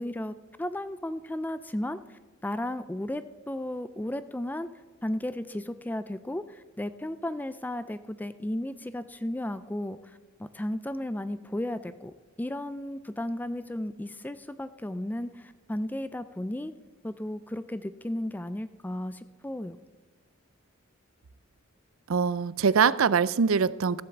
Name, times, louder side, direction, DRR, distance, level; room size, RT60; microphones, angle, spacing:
voice 1, 0.0-4.7 5.0-16.7 17.0-19.8, left 1 dB, 10° left, 13 dB, 0.4 m, -34 dB
voice 2, 22.1-24.0, right 6 dB, 75° right, 18 dB, 0.5 m, -23 dB
14.0 x 8.0 x 7.1 m, 1.3 s
head